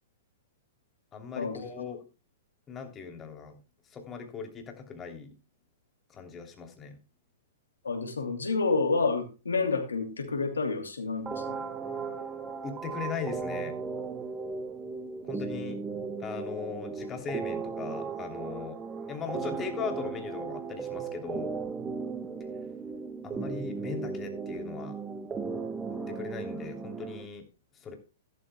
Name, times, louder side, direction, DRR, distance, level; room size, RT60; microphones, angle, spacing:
voice 1, 1.1-2.0 2.7-3.5 3.9-5.3 6.1-7.0 12.6-13.7 15.2-15.8 16.2-18.8 19.1-21.5 23.2-25.0 25.9-27.4 27.8-28.0, left 6 dB, 25° left, 5 dB, 3.0 m, -39 dB
voice 2, 7.8-11.6, left 4 dB, 90° left, 7 dB, 2.7 m, -29 dB
sound 1, 11.3-27.3, right 5 dB, 20° right, 1.4 m, -36 dB
14.0 x 12.5 x 2.2 m, 0.31 s
hypercardioid pair, 120°, 0 cm